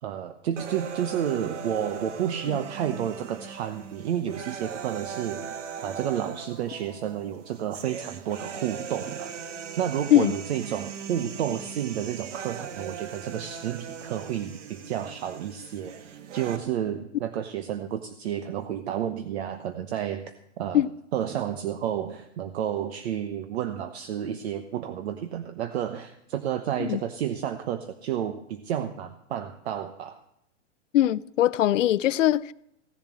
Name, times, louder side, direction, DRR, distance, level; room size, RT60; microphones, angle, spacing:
voice 1, 0.0-9.3 9.8-20.2 20.6-20.8 21.1-30.2, right 10 dB, 60° right, 1.0 m, -31 dB
sound 1, 0.6-16.6, right 7 dB, 75° right, 1.5 m, -39 dB
voice 2, 30.9-32.5, left 13 dB, 85° left, 0.6 m, -21 dB
16.5 x 7.3 x 7.4 m
hypercardioid pair, 150°, 37 cm